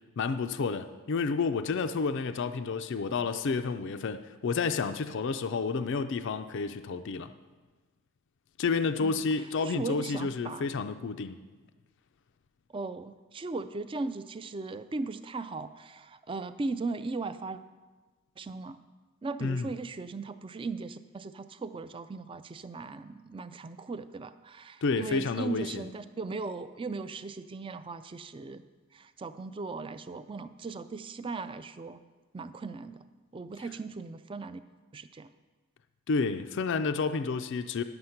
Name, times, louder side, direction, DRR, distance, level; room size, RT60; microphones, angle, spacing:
voice 1, 0.2-7.3 8.6-11.4 19.4-19.7 24.8-25.8 36.1-37.8, left 4 dB, 55° left, 9 dB, 0.4 m, -30 dB
voice 2, 9.6-10.7 12.7-17.6 18.4-18.8 19.2-28.6 28.9-32.0 32.3-33.1 33.3-34.6 34.9-35.3, right 3 dB, 25° right, 12 dB, 0.3 m, -38 dB
10.5 x 7.9 x 5.8 m, 1.3 s
head